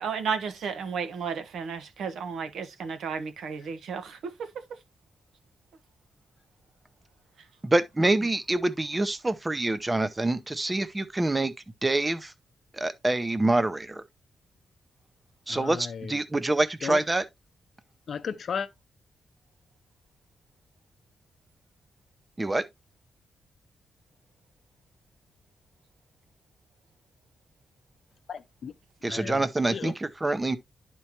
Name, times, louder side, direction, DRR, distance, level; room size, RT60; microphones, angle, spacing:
voice 1, 0.0-4.2, right 6 dB, 90° right, 1.2 m, -33 dB
voice 2, 7.6-11.5 11.8-12.3 12.7-14.0 15.5-17.2 22.4-22.6 29.0-30.6, right 2 dB, 15° right, 0.6 m, -26 dB
voice 3, 15.5-16.2 16.8-17.0 18.1-18.7 28.3-28.7 29.1-29.4 29.7-29.9, left 6 dB, 55° left, 0.7 m, -34 dB
11.0 x 4.5 x 2.8 m
wide cardioid pair, 130°, 0 cm